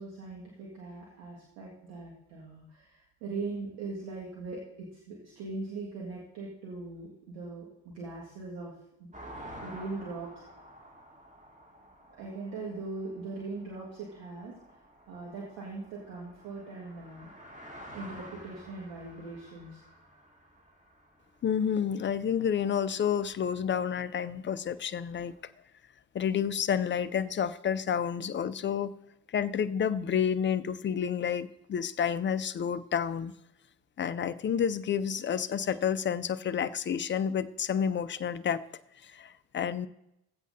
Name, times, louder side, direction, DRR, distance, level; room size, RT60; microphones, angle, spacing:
voice 1, 0.0-8.7 9.0-9.1 9.6-10.4 12.2-14.5 15.1-17.3 17.9-19.8, right 3 dB, 75° right, -4 dB, 2.0 m, -40 dB
sound 1, 9.1-22.2 23.0-23.1 23.2-25.5, equal, 15° right, 2.3 m, -51 dB
voice 2, 21.4-25.3 26.1-28.9 29.3-33.3 34.0-38.6 39.0-39.9, left 8 dB, 25° left, 15 dB, 0.4 m, -30 dB
16.0 x 8.1 x 2.7 m, 0.84 s
hypercardioid pair, 50°, 47 cm